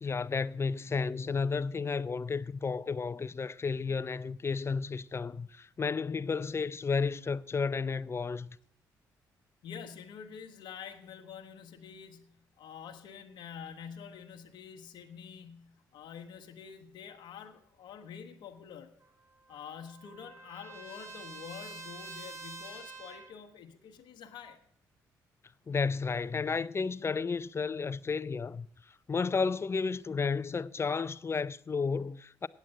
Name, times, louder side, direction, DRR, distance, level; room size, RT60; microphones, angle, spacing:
voice 1, 0.0-8.6 25.7-28.7 29.1-32.5, left 5 dB, 35° left, 0.5 m, -32 dB
voice 2, 9.6-18.9 19.5-24.6, left 7 dB, 75° left, 1.1 m, -47 dB
Trumpet, 19.0-23.4, right 3 dB, 35° right, 1.8 m, -47 dB
9.0 x 8.4 x 7.6 m
supercardioid pair, 55°, 8 cm